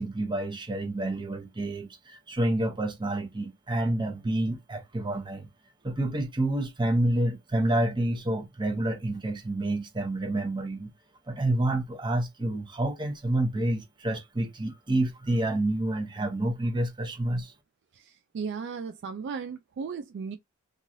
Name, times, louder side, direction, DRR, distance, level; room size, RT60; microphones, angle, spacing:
voice 1, 0.0-1.9 2.3-5.5 5.8-10.9 11.3-17.5, right 1 dB, 20° right, 0.7 m, -28 dB
voice 2, 17.9-20.4, right 5 dB, 55° right, 0.3 m, -36 dB
3.0 x 2.4 x 2.6 m
head